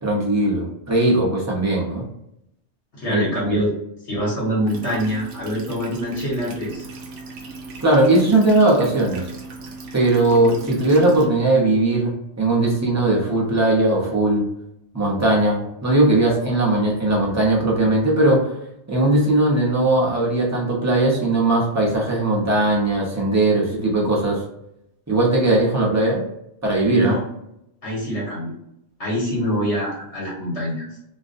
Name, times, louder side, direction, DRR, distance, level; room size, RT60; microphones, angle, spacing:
voice 1, 0.0-2.0 3.1-3.6 7.8-9.2 9.9-14.4 14.9-18.5 18.9-24.4 25.1-26.2 26.6-27.2, right 2 dB, 20° right, -4 dB, 0.6 m, -19 dB
voice 2, 2.9-3.7 4.1-6.8 26.9-27.2 27.8-28.5 29.0-30.8, equal, 75° left, -6 dB, 1.2 m, -25 dB
sound 1, 4.7-11.3, right 3 dB, 90° right, 0.9 m, -38 dB
2.5 x 2.1 x 2.5 m, 0.80 s
omnidirectional pair, 1.2 m